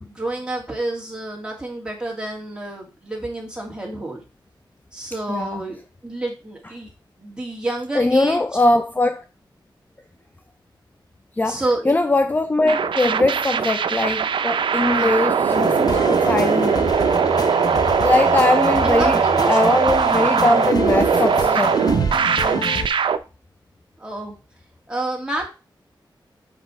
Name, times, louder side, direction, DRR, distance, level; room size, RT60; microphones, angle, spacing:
voice 1, 0.1-4.2 4.9-6.9 7.2-8.4 11.4-11.9 14.8-15.1 18.8-19.8 24.0-24.3 24.9-25.5, right 2 dB, 10° right, 2.4 m, -29 dB
voice 2, 5.3-5.6 7.9-9.2 11.4-16.8 18.0-19.2 19.5-21.8, left 2 dB, 20° left, 0.5 m, -21 dB
sound 1, 12.7-23.2, right 6 dB, 80° right, 0.5 m, -20 dB
sound 2, 15.5-22.9, left 4 dB, 50° left, 0.8 m, -28 dB
6.4 x 5.1 x 4.4 m
wide cardioid pair, 85°, 8 cm